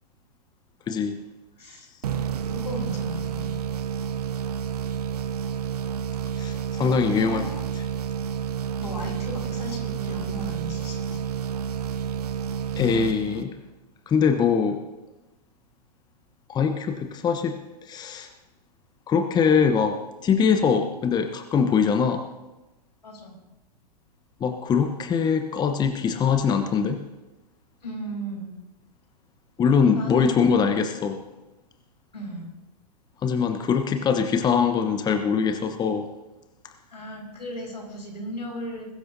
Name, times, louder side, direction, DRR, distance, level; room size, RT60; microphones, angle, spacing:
voice 1, 0.9-1.2 6.4-7.5 7.8-7.9 12.8-13.5 14.1-14.8 16.5-17.6 17.9-18.3 19.1-22.2 24.4-27.0 29.6-31.2 33.2-36.1, left 6 dB, 20° left, 6 dB, 1.0 m, -22 dB
voice 2, 1.6-1.9 2.5-3.7 6.9-7.4 8.8-11.2 23.0-23.4 27.8-28.6 30.0-30.6 32.1-32.5 36.9-38.9, right 1 dB, 90° left, 0 dB, 5.6 m, -35 dB
sound 1, 2.0-13.8, right 8 dB, 70° right, 1.2 m, -30 dB
21.5 x 13.5 x 2.8 m, 1.0 s
hypercardioid pair, 110°, 21 cm